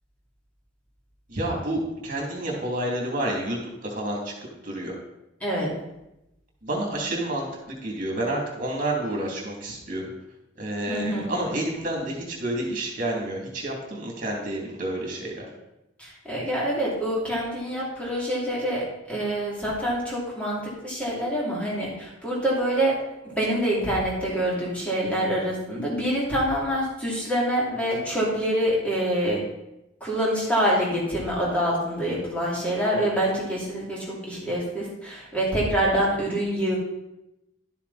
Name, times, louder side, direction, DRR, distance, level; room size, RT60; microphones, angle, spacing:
voice 1, 1.3-3.6 3.8-4.3 4.6-4.9 6.6-10.1 10.6-15.5, right 1 dB, 45° right, -1 dB, 2.9 m, -29 dB
voice 2, 5.4-5.7 10.9-11.3 16.0-20.6 20.8-23.0 23.2-29.4 30.0-36.8, equal, 5° left, -5 dB, 3.1 m, -26 dB
12.0 x 7.1 x 4.3 m, 0.91 s
head